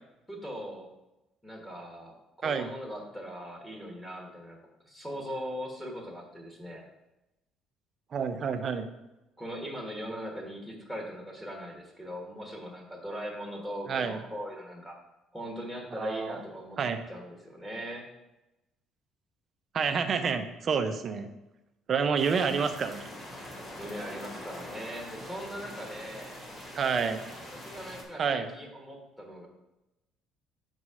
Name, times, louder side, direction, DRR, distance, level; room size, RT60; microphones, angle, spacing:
voice 1, 0.3-0.9 1.4-4.6 4.8-6.8 9.4-15.0 15.3-16.8 17.1-18.0 23.8-26.4 27.5-29.5, equal, 5° left, 0 dB, 1.4 m, -40 dB
voice 2, 2.4-2.7 8.1-8.9 13.9-14.2 16.0-16.4 16.8-17.0 19.7-21.3 21.9-23.0 26.7-27.2 28.2-28.5, right 6 dB, 40° right, 8 dB, 0.6 m, -28 dB
sound 1, 22.1-28.0, left 1 dB, 25° left, 2.0 m, -44 dB
6.4 x 4.1 x 4.9 m, 0.97 s
cardioid pair, 120°, 0 cm